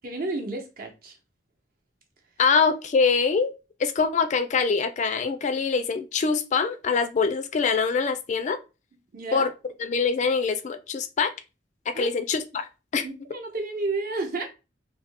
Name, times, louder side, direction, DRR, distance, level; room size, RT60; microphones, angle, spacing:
voice 1, 0.0-1.1 9.1-9.5 11.9-12.1 13.0-14.4, right 3 dB, 50° right, 0.8 m, -31 dB
voice 2, 2.4-3.5 3.8-8.6 9.3-9.5 9.8-11.3 11.9-13.0, left 5 dB, 40° left, 0.3 m, -24 dB
2.8 x 2.1 x 3.2 m
head